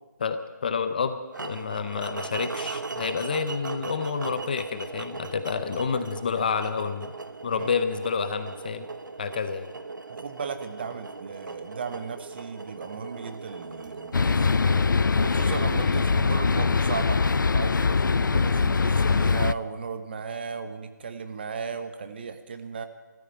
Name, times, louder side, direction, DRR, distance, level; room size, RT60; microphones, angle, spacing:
voice 1, 0.2-7.1 7.4-8.9 9.2-9.7 15.8-15.9, left 6 dB, 30° left, 10 dB, 0.7 m, -29 dB
sound 1, 1.3-17.4, right 3 dB, 75° right, 1.1 m, -39 dB
voice 2, 10.1-14.5 15.2-22.9, right 5 dB, 30° right, 9 dB, 1.1 m, -36 dB
sound 2, 14.1-19.5, left 4 dB, 85° left, 0.5 m, -22 dB
14.0 x 12.5 x 7.8 m, 1.3 s
figure-of-eight pair, 165°, 10 cm